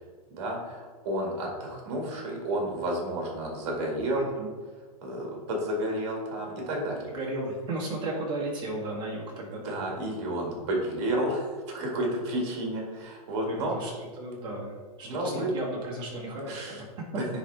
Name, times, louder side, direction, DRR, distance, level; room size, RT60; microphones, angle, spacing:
voice 1, 0.3-4.3 5.0-7.1 9.6-13.8 15.0-15.5 16.5-16.8 17.2-17.3, right 1 dB, 45° right, -1 dB, 1.9 m, -31 dB
voice 2, 4.1-4.5 7.1-9.8 13.5-13.9 14.2-16.9, right 2 dB, 25° right, -4 dB, 1.8 m, -35 dB
10.0 x 3.5 x 3.4 m, 1.5 s
hypercardioid pair, 155°, 19 cm